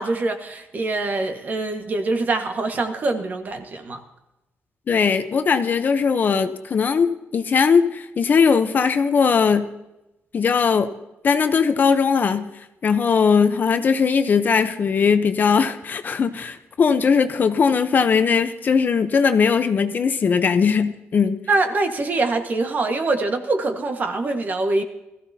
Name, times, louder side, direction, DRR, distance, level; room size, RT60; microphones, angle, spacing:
voice 1, 0.0-4.0 21.5-24.8, right 3 dB, 40° right, 5 dB, 1.6 m, -24 dB
voice 2, 4.9-9.7 10.3-10.9 11.2-12.5 12.8-21.4, left 6 dB, 45° left, 9 dB, 0.8 m, -19 dB
20.0 x 14.5 x 2.8 m, 0.92 s
wide cardioid pair, 140°, 4 cm